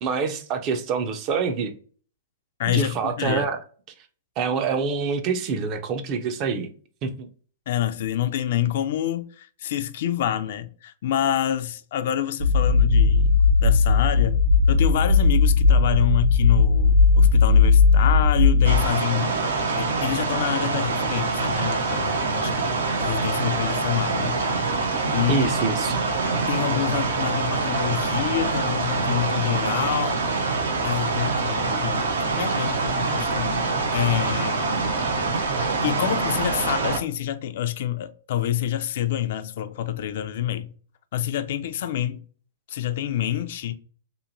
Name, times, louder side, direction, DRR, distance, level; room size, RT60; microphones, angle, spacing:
voice 1, 0.0-1.8 2.7-3.6 4.4-6.7 7.0-7.3 25.3-26.0, right 5 dB, 30° right, 0.4 m, -26 dB
voice 2, 2.6-3.4 7.7-14.4 14.7-19.5 19.8-24.4 25.1-25.5 26.5-30.2 30.8-32.1 32.4-33.6 33.9-34.7 35.8-40.7 41.1-42.2 42.7-43.7, left 11 dB, 55° left, 0.3 m, -27 dB
sound 1, 12.4-18.9, left 4 dB, 50° right, 1.1 m, -17 dB
sound 2, 18.6-37.0, right 3 dB, 80° right, 0.6 m, -25 dB
2.8 x 2.5 x 2.6 m
hypercardioid pair, 150°, 0 cm